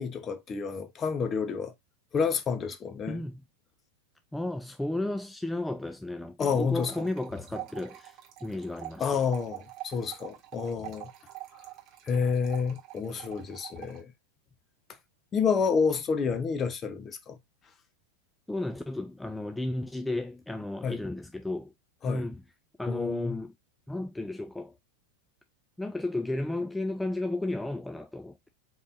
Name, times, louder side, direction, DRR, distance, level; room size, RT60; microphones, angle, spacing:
voice 1, 0.0-1.7 2.1-3.2 6.4-6.9 9.0-11.1 12.1-14.1 15.3-17.4 20.8-21.0 22.0-22.2 22.9-23.4, left 5 dB, 25° left, 0.8 m, -29 dB
voice 2, 3.1-3.4 4.3-9.2 18.5-21.7 22.1-22.4 22.8-23.5 23.9-24.7 25.8-28.5, left 2 dB, 5° left, 0.4 m, -33 dB
sound 1, 6.7-14.0, right 16 dB, 35° right, 1.4 m, -45 dB
5.2 x 3.9 x 2.6 m
figure-of-eight pair, 90°, 0 cm